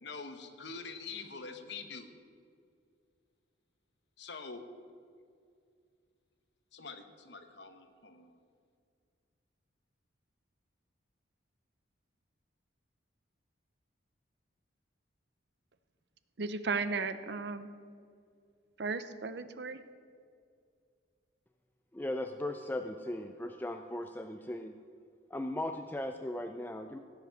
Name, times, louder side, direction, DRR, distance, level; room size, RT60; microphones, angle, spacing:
voice 1, 0.0-2.1 4.2-4.6 6.7-8.4, left 4 dB, 60° left, 7 dB, 1.1 m, -45 dB
voice 2, 16.4-17.7 18.8-19.8, right 4 dB, 55° right, 12 dB, 0.6 m, -35 dB
voice 3, 21.9-24.8 25.3-27.0, left 1 dB, 10° left, 6 dB, 0.3 m, -37 dB
16.0 x 8.2 x 6.3 m, 2.3 s
head